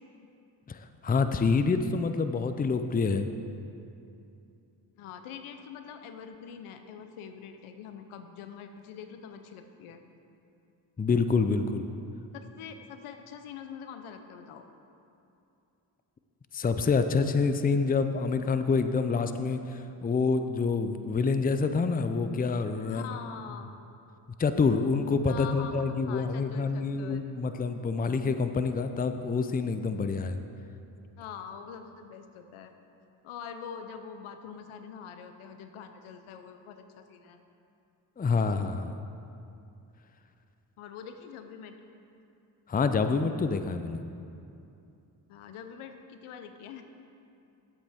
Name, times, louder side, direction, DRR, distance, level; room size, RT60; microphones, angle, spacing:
voice 1, 0.7-3.3 11.0-11.9 16.5-23.1 24.4-30.4 38.2-39.0 42.7-44.0, left 4 dB, 20° left, 9 dB, 0.5 m, -27 dB
voice 2, 5.0-10.0 12.3-14.7 22.9-23.7 25.3-27.3 31.2-32.7 33.2-37.4 40.8-41.8 45.3-46.8, left 7 dB, 80° left, 7 dB, 0.7 m, -44 dB
10.0 x 8.0 x 3.6 m, 2.7 s
supercardioid pair, 40°, 50 cm